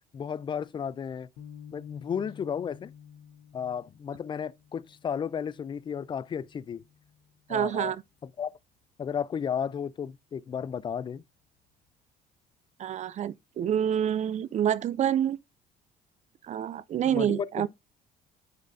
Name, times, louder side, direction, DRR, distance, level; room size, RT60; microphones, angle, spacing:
voice 1, 0.1-1.3 1.7-2.9 3.5-6.8 7.5-7.9 8.2-8.5 9.0-11.2 17.0-17.7, left 7 dB, 30° left, 0.3 m, -33 dB
sound 1, 1.4-7.8, left 8 dB, 85° left, 0.9 m, -51 dB
voice 2, 7.5-8.0 12.8-15.4 16.4-17.7, right 9 dB, 45° right, 0.4 m, -27 dB
9.4 x 4.2 x 2.6 m
cardioid pair, 110°, 17 cm